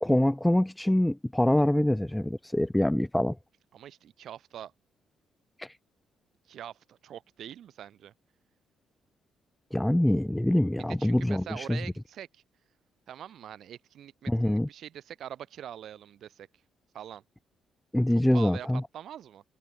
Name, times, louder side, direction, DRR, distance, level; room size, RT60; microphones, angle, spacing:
voice 1, 0.0-3.4 5.6-5.8 9.7-11.8 14.3-14.7 17.9-18.8, left 1 dB, 5° left, 0.5 m, -25 dB
voice 2, 3.7-4.7 6.5-8.1 11.0-12.4 13.1-16.5 16.9-17.2 18.3-19.4, right 10 dB, 70° right, 5.4 m, -44 dB
cardioid pair, 90°, 0 cm